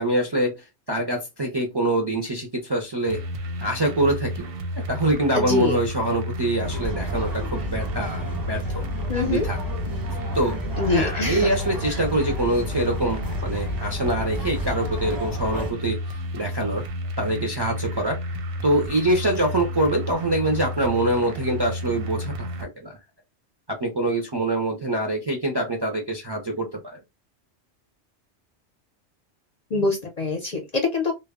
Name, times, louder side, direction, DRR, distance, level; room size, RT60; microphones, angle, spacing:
voice 1, 0.0-3.2 3.6-4.4 4.8-8.8 9.2-9.6 10.3-10.6 10.9-16.8 17.2-18.2 18.6-23.0 23.7-27.0, right 1 dB, 35° right, 0.4 m, -25 dB
sound 1, 3.1-22.7, equal, 65° right, 0.7 m, -32 dB
voice 2, 5.3-5.8 9.1-9.5 10.8-11.5 29.7-31.1, left 3 dB, 50° left, 0.5 m, -24 dB
sound 2, 6.6-15.7, left 1 dB, 20° right, 0.8 m, -32 dB
2.1 x 2.0 x 3.5 m
omnidirectional pair, 1.2 m